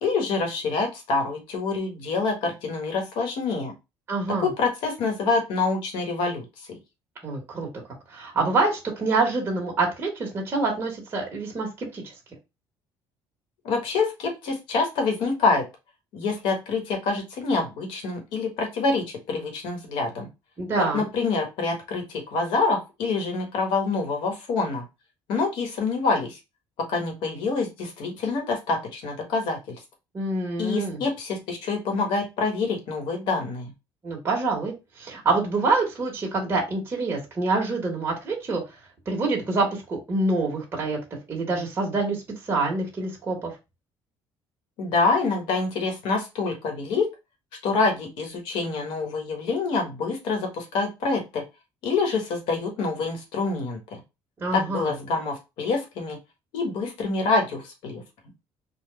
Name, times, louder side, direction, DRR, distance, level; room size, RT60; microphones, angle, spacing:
voice 1, 0.0-3.7 4.4-6.8 13.6-15.6 16.1-20.3 20.8-24.8 25.3-26.4 26.8-29.7 30.6-33.7 44.8-47.1 47.6-51.4 51.8-54.0 54.5-56.2 56.5-58.0, left 4 dB, 75° left, 3 dB, 1.5 m, -26 dB
voice 2, 4.1-4.5 7.2-7.7 8.1-12.1 20.6-21.1 30.1-31.0 34.0-38.6 39.0-41.0 41.3-42.2 42.5-43.5 54.4-54.9, right 3 dB, 25° right, -1 dB, 1.4 m, -26 dB
4.1 x 2.5 x 3.3 m, 0.25 s
cardioid pair, 145°, 9 cm